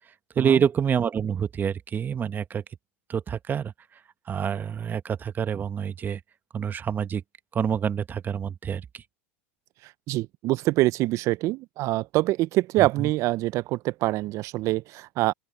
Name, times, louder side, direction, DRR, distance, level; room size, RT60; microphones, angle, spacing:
voice 1, 0.4-2.6 3.1-3.7 4.3-6.2 6.5-7.2 7.5-8.8 13.0-13.1, right 7 dB, 25° right, 1.5 m, -27 dB
voice 2, 10.1-15.3, right 18 dB, 45° right, 0.8 m, -25 dB
open air
hypercardioid pair, 90°, 7 cm